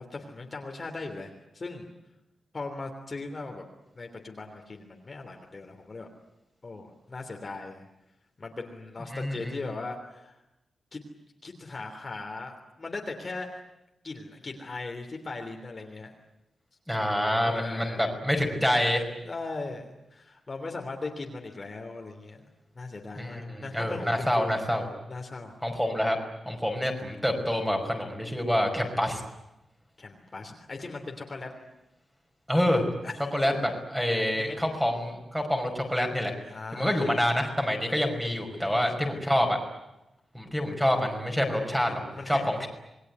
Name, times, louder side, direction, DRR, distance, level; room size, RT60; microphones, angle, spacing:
voice 1, 0.0-1.9 2.5-3.6 3.9-6.1 6.6-7.9 8.4-10.4 10.9-11.0 11.4-13.6 14.0-16.1 17.4-18.1 19.2-22.4 22.8-24.6 25.1-25.5 30.0-31.5 33.0-33.1 34.3-34.5 36.5-37.2 38.6-39.1 41.9-42.5, left 3 dB, 30° left, 3 dB, 3.2 m, -39 dB
voice 2, 9.1-9.6 16.9-19.0 23.2-24.9 25.6-26.2 26.5-29.2 32.5-32.8 33.3-36.3 36.7-39.6 40.3-42.7, equal, 5° right, 3 dB, 5.3 m, -27 dB
27.5 x 21.5 x 9.6 m, 0.92 s
wide cardioid pair, 160°, 0 cm